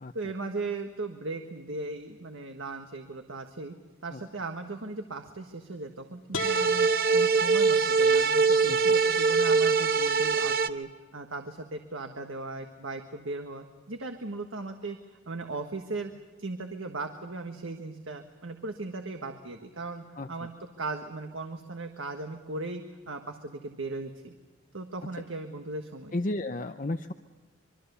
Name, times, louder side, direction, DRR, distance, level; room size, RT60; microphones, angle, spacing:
voice 1, 0.1-3.7 4.0-15.0 15.3-16.1 16.4-24.3 24.7-26.2, right 3 dB, 80° right, 5 dB, 1.5 m, -37 dB
sound 1, 6.3-8.2, left 4 dB, 85° left, 1.9 m, -39 dB
sound 2, 6.4-10.7, right 4 dB, 45° right, 0.8 m, -23 dB
voice 2, 26.1-27.1, left 2 dB, 40° left, 8 dB, 0.7 m, -32 dB
25.5 x 23.5 x 6.9 m, 1.4 s
head